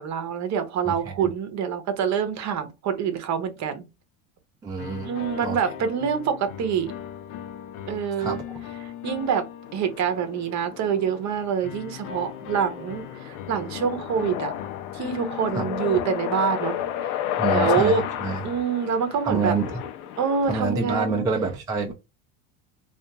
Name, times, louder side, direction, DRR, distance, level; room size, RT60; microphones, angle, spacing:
voice 1, 0.0-3.9 5.0-6.9 7.9-8.4 9.0-9.5 9.7-14.5 14.9-18.0 18.4-19.5 20.2-21.2, right 7 dB, 40° right, 0.7 m, -26 dB
voice 2, 0.8-1.3 4.6-5.1 5.4-5.6 8.2-8.6 15.6-15.7 17.4-18.4 19.2-19.8 20.5-21.9, right 4 dB, 10° right, 0.3 m, -27 dB
sound 1, 4.8-10.6 11.6-19.0, left 10 dB, 50° left, 0.5 m, -39 dB
sound 2, 9.6-20.7, left 11 dB, 90° left, 0.7 m, -32 dB
2.8 x 2.4 x 2.2 m
supercardioid pair, 115°, 43 cm